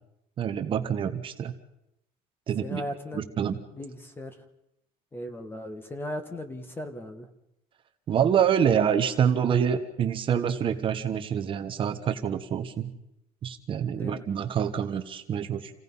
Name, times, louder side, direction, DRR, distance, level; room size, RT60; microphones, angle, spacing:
voice 1, 0.4-1.5 2.5-2.8 3.1-3.6 8.1-12.9 13.4-15.7, right 8 dB, 30° right, 7 dB, 1.1 m, -26 dB
voice 2, 2.6-3.2 3.7-4.4 5.1-7.3 13.9-14.2, left 1 dB, 15° left, 8 dB, 1.6 m, -37 dB
28.5 x 17.5 x 5.5 m, 0.82 s
cardioid pair, 175°, 16 cm